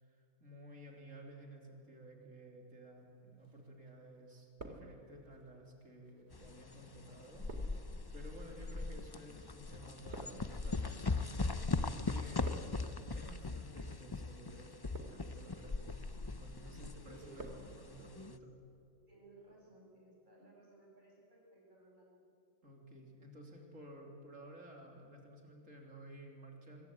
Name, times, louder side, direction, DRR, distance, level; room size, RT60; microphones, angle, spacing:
voice 1, 0.0-12.6 13.1-16.0 16.3-18.4 22.6-26.9, right 1 dB, 70° right, 1 dB, 3.7 m, -54 dB
sound 1, 3.4-4.0 4.3-5.4 6.1-11.7 12.0-13.0 13.7-14.0 14.6-15.5 15.9-16.3 16.7-17.7 17.9-18.0, right 2 dB, 55° right, 2.7 m, -52 dB
sound 2, 6.3-18.4, left 3 dB, 25° left, 0.6 m, -40 dB
voice 2, 17.0-17.4 18.0-18.3 19.1-22.2, right 2 dB, 35° right, -3 dB, 8.2 m, -60 dB
25.5 x 22.5 x 8.6 m, 2.5 s
omnidirectional pair, 1.4 m